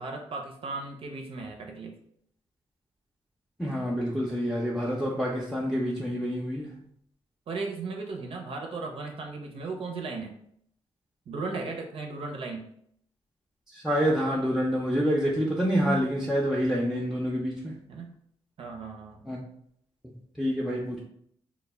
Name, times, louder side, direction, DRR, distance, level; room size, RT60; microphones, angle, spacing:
voice 1, 0.0-1.9 7.5-10.3 11.3-12.7 17.9-18.2 18.6-19.2, right 3 dB, 60° right, 2 dB, 0.4 m, -36 dB
voice 2, 3.6-6.8 13.7-17.8 19.3-19.4 20.0-21.0, equal, ahead, -4 dB, 0.4 m, -27 dB
2.1 x 2.0 x 3.2 m, 0.68 s
cardioid pair, 80°, 11 cm